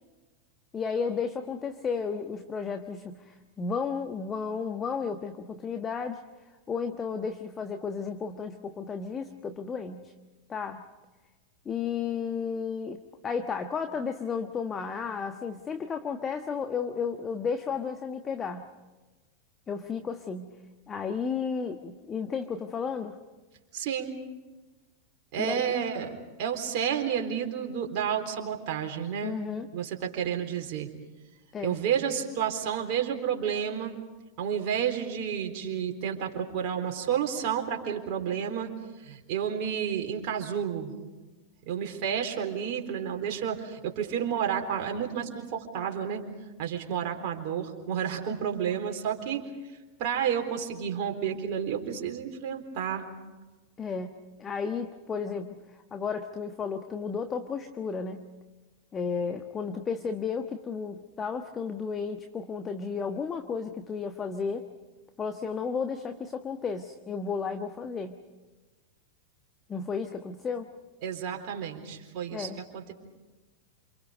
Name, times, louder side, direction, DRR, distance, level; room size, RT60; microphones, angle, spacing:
voice 1, 0.7-6.2 6.7-10.1 10.5-10.8 11.6-18.7 19.7-20.5 20.9-23.2 25.4-25.8 29.2-29.7 31.5-31.8 53.8-55.6 55.9-58.3 58.9-64.7 65.2-68.2 69.7-70.7 72.3-72.6, left 5 dB, 20° left, 7 dB, 1.3 m, -33 dB
voice 2, 23.7-24.2 25.3-29.3 29.7-30.9 31.6-33.9 34.4-38.7 39.0-40.9 41.7-46.2 46.6-49.4 50.0-53.1 71.0-72.9, right 8 dB, 45° right, 2 dB, 3.8 m, -31 dB
28.5 x 28.0 x 5.2 m, 1.2 s
figure-of-eight pair, 90°, 0 cm